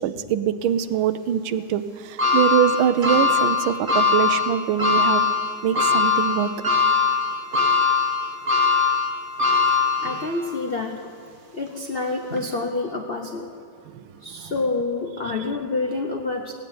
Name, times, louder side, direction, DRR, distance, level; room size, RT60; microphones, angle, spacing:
voice 1, 0.0-5.3 5.6-6.5 13.9-14.1 14.4-14.5, right 9 dB, 90° right, 12 dB, 1.5 m, -23 dB
sound 1, 2.2-10.5 11.0-11.1 12.3-12.4, left 5 dB, 30° right, 1.5 m, -21 dB
voice 2, 10.0-11.0 11.5-13.5 14.2-16.5, left 3 dB, 65° left, 4 dB, 0.5 m, -28 dB
16.0 x 9.0 x 9.2 m, 2.3 s
omnidirectional pair, 2.1 m